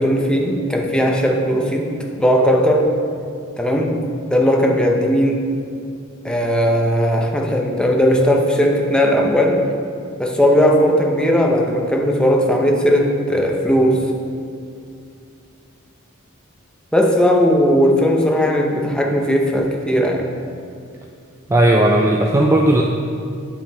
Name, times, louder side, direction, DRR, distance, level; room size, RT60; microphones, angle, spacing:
voice 1, 0.0-1.9 2.2-2.9 3.6-3.9 4.3-5.5 6.2-9.6 10.2-14.0 16.9-20.3, equal, 5° left, 0 dB, 0.7 m, -17 dB
voice 2, 21.5-22.8, right 1 dB, 15° right, 1 dB, 0.3 m, -15 dB
8.9 x 5.6 x 4.4 m, 2.4 s
head